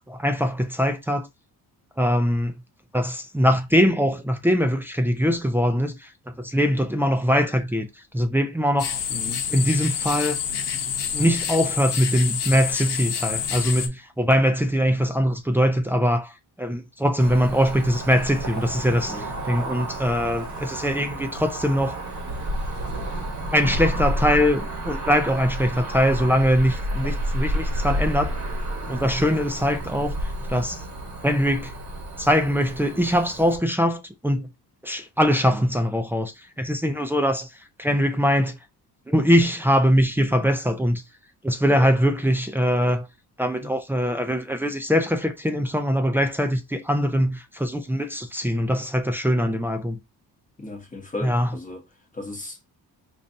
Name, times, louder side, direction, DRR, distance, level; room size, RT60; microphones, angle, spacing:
voice 1, 0.1-1.3 2.0-2.5 2.9-7.9 8.1-9.0 9.5-10.4 11.1-16.3 16.6-22.0 23.5-28.4 28.9-30.2 30.5-30.8 31.2-31.7 32.2-34.5 34.8-37.5 37.8-38.6 39.1-41.0 41.4-43.1 43.4-50.0 51.2-51.6, equal, 5° right, 0.4 m, -22 dB
sound 1, 8.8-13.9, left 7 dB, 90° left, 1.0 m, -28 dB
voice 2, 9.1-9.5 19.1-19.3 35.5-35.6 41.6-41.9 50.6-51.8 52.2-52.6, left 2 dB, 20° left, 1.0 m, -35 dB
Cricket / Motor vehicle (road), 17.2-33.6, right 1 dB, 45° right, 1.1 m, -30 dB
4.5 x 2.6 x 2.6 m
cardioid pair, 130°, 39 cm